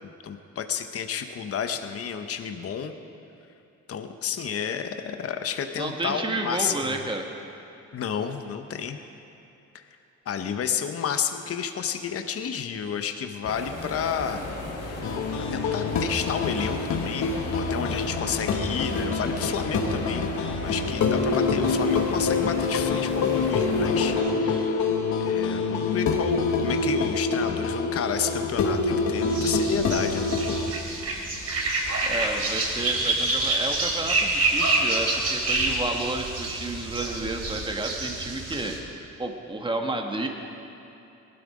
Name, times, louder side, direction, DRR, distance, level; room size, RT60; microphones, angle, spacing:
voice 1, 0.0-2.9 3.9-7.0 7.9-9.0 9.7-9.9 10.3-14.4 15.5-20.3 20.6-24.9 25.2-30.3, left 7 dB, 50° left, 7 dB, 0.9 m, -31 dB
voice 2, 5.8-7.3 32.0-40.3, right 2 dB, 15° right, 3 dB, 1.6 m, -31 dB
sound 1, 13.4-24.2, left 2 dB, 90° left, 3.6 m, -35 dB
sound 2, 15.0-30.7, left 4 dB, 65° left, 1.3 m, -26 dB
sound 3, 29.3-38.8, right 2 dB, 55° right, 3.1 m, -27 dB
19.0 x 12.5 x 5.0 m, 2.9 s
cardioid pair, 90°, 30 cm